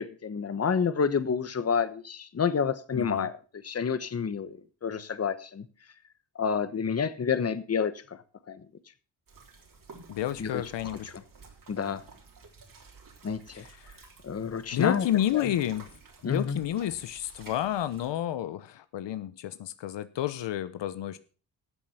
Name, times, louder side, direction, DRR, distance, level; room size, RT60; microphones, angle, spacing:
voice 1, 0.0-3.4 3.6-5.6 6.3-8.6 10.4-10.6 10.9-11.0 11.7-12.0 13.2-13.6 14.2-15.1 15.3-15.5 16.2-16.6, left 6 dB, 35° left, 13 dB, 1.1 m, -29 dB
voice 2, 2.9-3.3 10.1-11.1 13.5-13.9 14.7-15.9 16.2-21.2, left 12 dB, 80° left, 13 dB, 0.9 m, -30 dB
sound 1, 9.3-18.1, right 4 dB, 50° right, 3.5 m, -52 dB
13.0 x 7.5 x 5.7 m, 0.38 s
cardioid pair, 90°, 43 cm